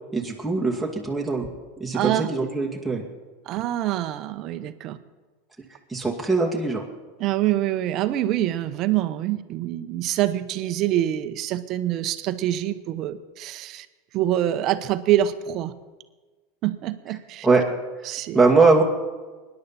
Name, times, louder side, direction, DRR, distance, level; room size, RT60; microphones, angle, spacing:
voice 1, 0.1-1.5 1.8-3.0 5.9-6.8 17.4-17.6 18.3-18.8, right 3 dB, 5° right, -3 dB, 2.3 m, -21 dB
voice 2, 1.9-2.3 3.5-5.0 7.2-13.9 14.1-15.7 16.6-17.5 18.0-18.4, right 13 dB, 50° right, 11 dB, 1.0 m, -25 dB
24.5 x 11.0 x 4.3 m, 1.3 s
hypercardioid pair, 85°, 0 cm